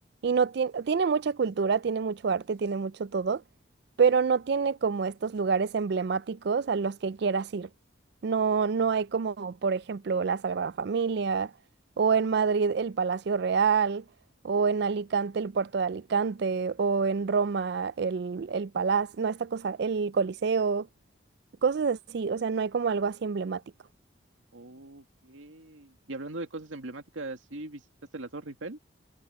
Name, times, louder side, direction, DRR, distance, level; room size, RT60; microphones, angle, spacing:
voice 1, 0.2-3.4 4.0-7.7 8.2-11.5 12.0-14.0 14.4-20.9 21.6-23.6, right 5 dB, 55° right, 0.4 m, -27 dB
voice 2, 24.5-27.8 28.1-28.8, right 2 dB, 80° right, 2.2 m, -40 dB
head